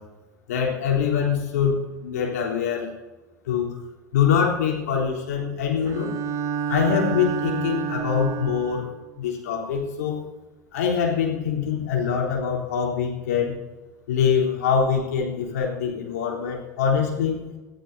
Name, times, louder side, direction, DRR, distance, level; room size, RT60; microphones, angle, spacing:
voice 1, 0.5-2.9 3.5-3.7 4.1-6.1 6.7-8.9 9.2-10.3 10.7-13.5 14.1-17.4, left 7 dB, 65° left, -2 dB, 3.5 m, -24 dB
Bowed string instrument, 5.9-9.0, right 7 dB, 35° right, 1.7 m, -29 dB
23.0 x 14.5 x 2.7 m, 1.1 s
figure-of-eight pair, 70°, 9 cm